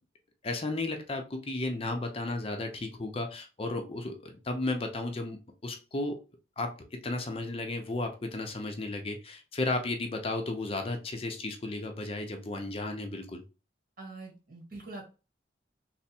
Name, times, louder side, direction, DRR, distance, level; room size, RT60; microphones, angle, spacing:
voice 1, 0.4-6.2 6.6-13.4, left 2 dB, 35° left, 5 dB, 0.5 m, -34 dB
voice 2, 14.0-15.0, right 2 dB, 55° right, 0 dB, 1.4 m, -44 dB
3.4 x 2.0 x 4.2 m, 0.32 s
head